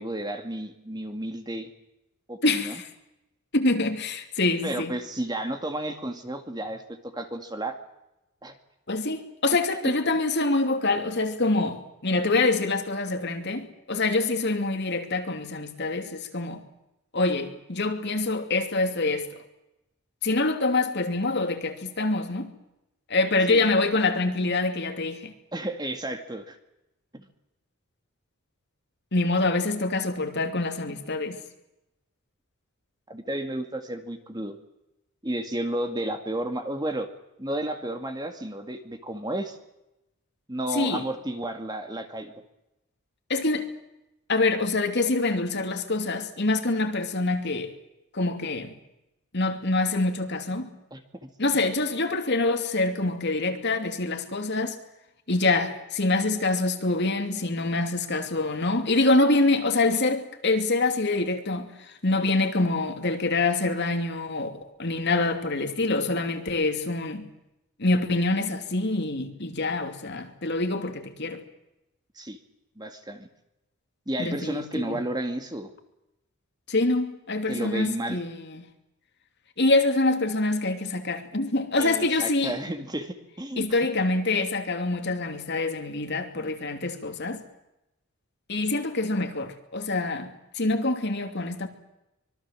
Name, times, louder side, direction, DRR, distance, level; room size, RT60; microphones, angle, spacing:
voice 1, 0.0-1.7 2.3-2.8 4.6-7.8 8.4-8.6 9.8-9.9 23.5-23.7 25.5-26.6 27.1-27.3 33.1-34.6 35.2-37.1 37.4-39.6 40.5-42.3 50.9-51.3 72.2-72.4 72.8-73.3 74.1-75.7 77.5-78.2 81.8-83.7, right 1 dB, 20° right, 2.1 m, -32 dB
voice 2, 2.4-2.9 3.5-4.9 8.9-16.6 17.1-19.3 20.2-22.5 23.1-25.3 29.1-31.4 40.7-41.0 43.3-43.7 44.3-47.7 48.1-48.7 49.3-50.7 51.4-54.8 55.3-61.7 62.0-67.3 67.8-71.4 74.2-75.0 76.7-78.6 79.6-82.5 83.6-87.4 88.5-91.7, left 2 dB, 50° left, 2.7 m, -25 dB
25.0 x 22.5 x 7.6 m
head